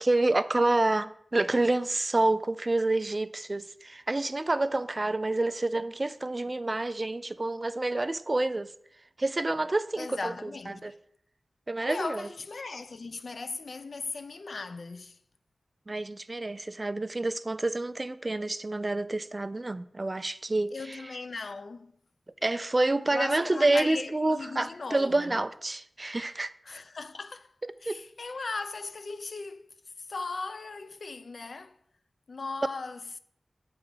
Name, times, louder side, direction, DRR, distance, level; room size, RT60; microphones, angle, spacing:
voice 1, 0.0-8.7 9.2-10.9 11.7-12.2 15.9-21.0 22.4-26.5 27.9-28.0, right 2 dB, 35° right, 0.3 m, -28 dB
voice 2, 5.3-5.8 9.9-11.0 11.9-15.2 20.7-22.0 23.1-25.4 26.6-27.5 27.8-29.7 30.0-31.8 32.3-33.2, left 3 dB, 75° left, 0.4 m, -38 dB
9.1 x 3.6 x 4.9 m
wide cardioid pair, 85°, 0 cm